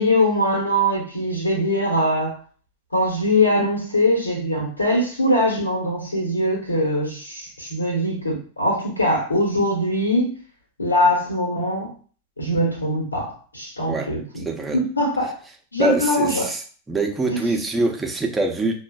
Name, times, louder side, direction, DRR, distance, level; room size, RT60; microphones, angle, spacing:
voice 1, 0.0-2.4 2.9-10.3 10.8-11.9 12.4-14.5 14.7-15.4 15.7-16.5 17.3-17.4, left 1 dB, 80° left, -1 dB, 1.2 m, -22 dB
voice 2, 14.5-14.8 15.8-16.6 16.9-18.8, right 2 dB, 10° right, 3 dB, 0.7 m, -24 dB
5.8 x 2.4 x 2.3 m, 0.40 s
figure-of-eight pair, 90°, 0 cm